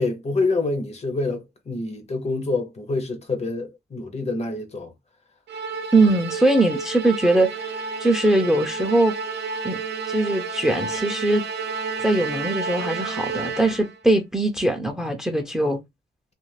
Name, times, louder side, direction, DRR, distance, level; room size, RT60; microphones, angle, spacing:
voice 1, 0.0-4.9, left 3 dB, 40° left, 0.7 m, -26 dB
Musical instrument, 5.5-14.0, right 5 dB, 75° right, 0.6 m, -31 dB
voice 2, 5.9-9.1 9.6-9.8 10.1-11.4 12.0-15.8, right 2 dB, 5° right, 0.5 m, -21 dB
2.4 x 2.4 x 3.1 m
wide cardioid pair, 125°, 18 cm